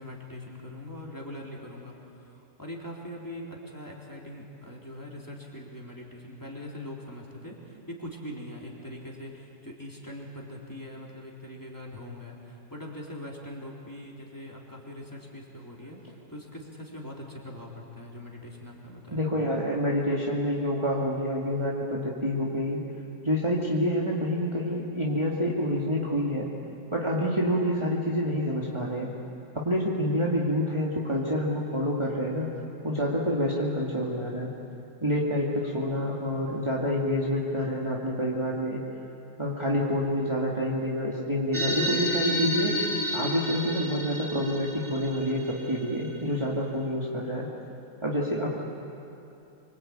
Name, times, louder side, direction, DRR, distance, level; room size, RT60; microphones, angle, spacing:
voice 1, 0.0-19.2, left 1 dB, 10° left, -3 dB, 4.0 m, -42 dB
voice 2, 19.1-22.8 23.2-26.5 26.9-29.1 29.5-32.5 32.8-34.5 35.0-38.8 39.4-42.8 43.1-47.5 48.0-48.6, equal, 15° right, -4 dB, 2.4 m, -27 dB
sound 1, 41.5-46.4, equal, 30° right, 5.2 m, -31 dB
26.0 x 25.0 x 9.0 m, 2.8 s
omnidirectional pair, 1.8 m